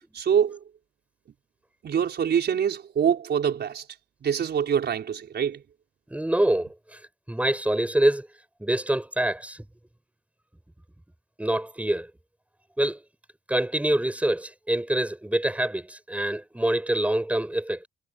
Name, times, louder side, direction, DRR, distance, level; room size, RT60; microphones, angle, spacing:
voice 1, 0.1-0.6 1.8-3.9 4.2-5.6, right 8 dB, 60° right, 5.0 m, -25 dB
voice 2, 6.1-7.0 7.3-8.3 8.6-9.6 11.4-12.1 12.8-13.0 13.5-17.9, right 1 dB, 5° right, 6.2 m, -25 dB
cardioid pair, 90°, 20 cm